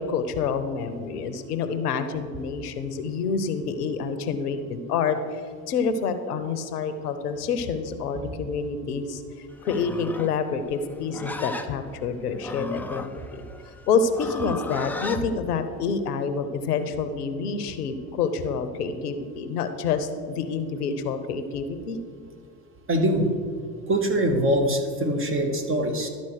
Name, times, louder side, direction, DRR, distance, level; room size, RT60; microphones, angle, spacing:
voice 1, 0.0-5.4 5.7-13.5 13.9-22.0, left 5 dB, 85° left, 10 dB, 0.7 m, -28 dB
Livestock farm animals working animals, 9.6-15.2, left 2 dB, 5° left, 0.3 m, -35 dB
voice 2, 22.9-23.3 23.9-26.1, right 1 dB, 25° right, 4 dB, 1.3 m, -23 dB
12.0 x 4.2 x 6.3 m, 2.2 s
hypercardioid pair, 65°, 46 cm